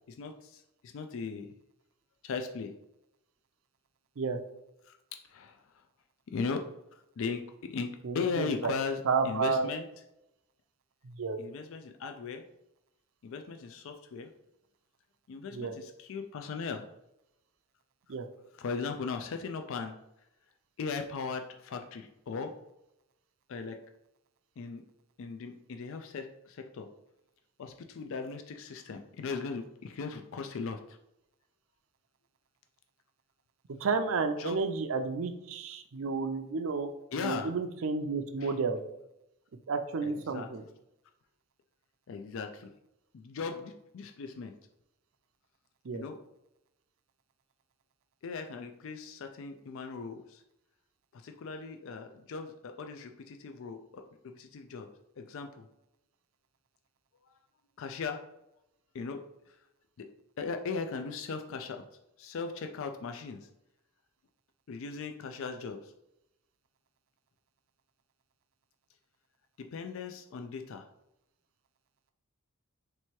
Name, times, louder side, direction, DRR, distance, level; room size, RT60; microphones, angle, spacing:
voice 1, 0.1-1.5 2.2-2.7 4.8-5.0 5.3-5.7 6.3-6.6 7.2-7.4 7.7-7.9 8.1-9.0 9.2-9.8 11.4-12.4 13.2-14.3 15.3-16.9 18.5-20.0 20.8-22.5 23.5-23.8 24.6-24.8 25.2-26.9 27.6-31.0 34.4-34.6 37.1-37.5 38.4-38.5 40.0-40.5 42.1-42.7 43.1-44.5 45.9-46.2 48.2-50.4 51.1-54.9 55.2-55.7 57.8-58.2 58.9-59.6 60.0-60.1 60.4-61.8 62.2-63.5 64.7-65.9 69.6-70.9, left 5 dB, 60° left, 6 dB, 0.4 m, -38 dB
voice 2, 8.0-8.8 9.0-9.7 11.0-11.4 15.5-15.7 18.1-18.3 33.8-38.8 39.7-40.6 45.8-46.0, right 4 dB, 65° right, 7 dB, 0.5 m, -31 dB
3.3 x 3.0 x 4.5 m, 0.85 s
head